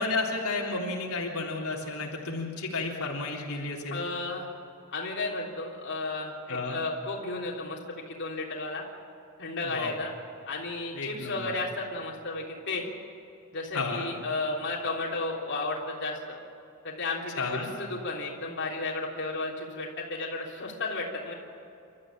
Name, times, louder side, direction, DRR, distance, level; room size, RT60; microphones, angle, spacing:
voice 1, 0.0-4.0 6.5-6.8 9.6-10.0 10.9-11.6 13.7-14.1 17.4-17.7, left 3 dB, 80° left, -2 dB, 3.5 m, -32 dB
voice 2, 3.9-4.5 4.9-8.8 9.4-10.1 10.5-12.9 13.5-16.4 16.8-21.3, left 3 dB, 55° left, -3 dB, 3.5 m, -33 dB
29.0 x 13.5 x 8.8 m, 2.7 s
head